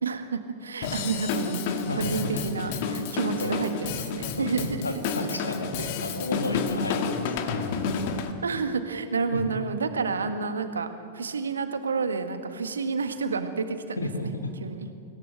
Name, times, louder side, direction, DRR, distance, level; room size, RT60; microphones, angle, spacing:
voice 1, 0.0-5.0 5.8-5.9 8.4-10.9 11.1-14.9, right 4 dB, 70° right, 8 dB, 1.7 m, -30 dB
Drum kit / Drum, 0.8-8.3, left 5 dB, 50° left, 1.9 m, -30 dB
voice 2, 1.9-2.4 3.4-3.6 4.4-4.5 4.8-5.7 6.0-7.3 9.3-9.5 14.0-14.4, left 2 dB, 80° left, 5 dB, 1.8 m, -32 dB
26.0 x 17.0 x 8.0 m, 2.3 s
figure-of-eight pair, 90°, 0 cm